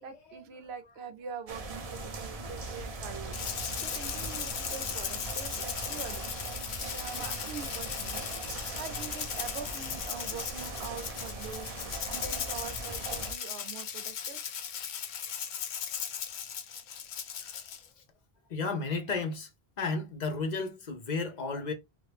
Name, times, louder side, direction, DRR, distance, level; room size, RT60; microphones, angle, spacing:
voice 1, 0.0-6.3 6.8-14.4, right 6 dB, 80° right, 0.9 m, -44 dB
sound 1, 1.5-13.3, right 3 dB, 45° right, 0.6 m, -40 dB
Rattle (instrument), 3.3-17.9, left 8 dB, 90° left, 0.9 m, -37 dB
voice 2, 18.5-19.5 19.8-21.7, left 4 dB, 50° left, 0.8 m, -33 dB
2.9 x 2.4 x 3.2 m
omnidirectional pair, 1.1 m